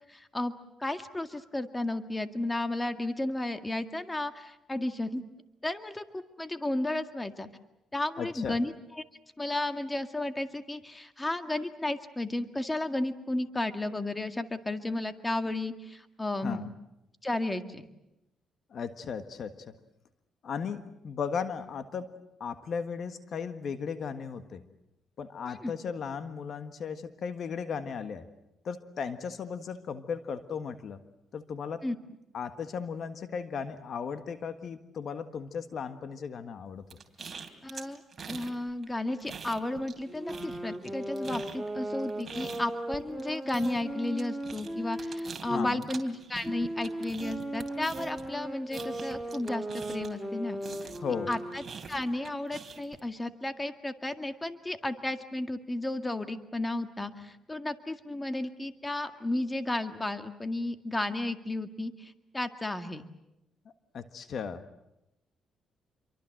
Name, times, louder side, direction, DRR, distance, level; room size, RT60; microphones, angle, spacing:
voice 1, 0.1-0.5 0.8-5.2 5.6-7.5 7.9-9.0 9.4-16.6 17.2-17.9 25.5-25.7 31.8-32.0 37.6-38.0 38.3-50.9 51.3-51.6 51.9-63.0, left 2 dB, 15° left, 8 dB, 2.0 m, -33 dB
voice 2, 8.2-8.6 16.4-16.7 18.7-19.6 20.4-24.6 25.2-28.2 28.6-31.0 31.3-31.8 32.3-36.8 45.5-45.8 51.0-51.3 63.9-64.7, left 6 dB, 60° left, 10 dB, 1.5 m, -36 dB
sound 1, 36.9-38.5 38.8-40.0 40.3-50.3 50.6-53.0, right 5 dB, 35° right, 3.4 m, -45 dB
sound 2, 40.0-45.7 46.4-51.8, right 1 dB, 5° right, 2.6 m, -37 dB
27.0 x 24.0 x 7.8 m, 0.88 s
cardioid pair, 90°, 0 cm